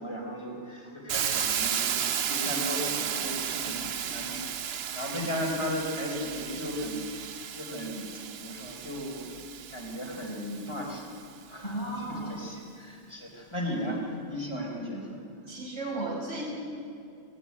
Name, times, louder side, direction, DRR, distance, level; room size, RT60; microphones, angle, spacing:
voice 1, 0.0-7.0 7.3-8.1 8.4-9.3 9.7-11.1 11.4-15.1, equal, 25° left, -2 dB, 4.0 m, -36 dB
Hiss, 1.1-11.0, right 8 dB, 60° right, 0.9 m, -33 dB
voice 2, 11.6-12.5 15.5-16.4, right 2 dB, 80° right, -3 dB, 5.4 m, -34 dB
19.5 x 15.0 x 9.7 m, 2.5 s
omnidirectional pair, 1.2 m